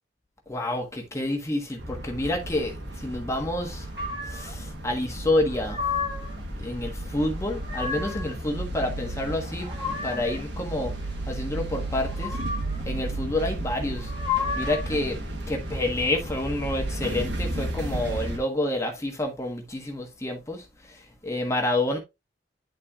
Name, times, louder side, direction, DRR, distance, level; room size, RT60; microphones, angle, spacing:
voice 1, 0.5-3.9 4.2-5.9 6.6-10.9 11.2-12.4 12.8-14.1 14.5-15.2 15.5-22.0, left 1 dB, 15° left, 1.3 m, -29 dB
sound 1, 1.8-18.4, right 1 dB, 75° right, 1.5 m, -33 dB
sound 2, 3.9-4.5 5.4-6.4 7.3-8.3 9.3-10.4 11.9-12.8 13.9-15.0, left 5 dB, 30° right, 2.6 m, -32 dB
10.5 x 4.3 x 2.4 m
head